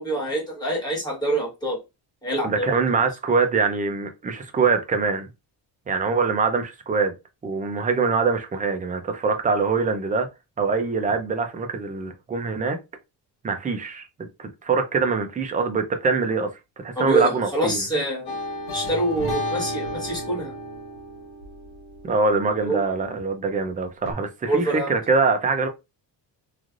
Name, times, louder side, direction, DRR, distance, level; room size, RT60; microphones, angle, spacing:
voice 1, 0.0-1.8 2.2-2.7 17.0-18.4 18.7-20.5 22.6-22.8 24.5-24.9, right 1 dB, 10° left, 1.4 m, -25 dB
voice 2, 2.4-5.3 5.9-7.1 7.4-10.3 10.6-12.8 13.4-14.1 14.4-16.5 16.8-17.9 22.0-25.7, right 4 dB, 20° right, 0.4 m, -23 dB
sound 1, 18.3-23.2 24.1-24.2, left 1 dB, 80° left, 1.2 m, -33 dB
3.2 x 2.5 x 2.4 m
cardioid pair, 155°, 45 cm